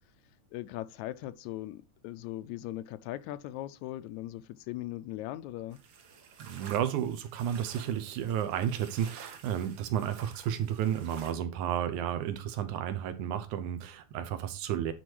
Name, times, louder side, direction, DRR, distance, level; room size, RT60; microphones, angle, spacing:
voice 1, 0.5-5.8, left 15 dB, 80° left, 1.8 m, -39 dB
sound 1, 5.7-11.3, right 6 dB, 55° right, 1.4 m, -51 dB
voice 2, 6.4-14.9, right 10 dB, 80° right, 2.3 m, -32 dB
9.9 x 4.6 x 4.6 m
omnidirectional pair, 3.4 m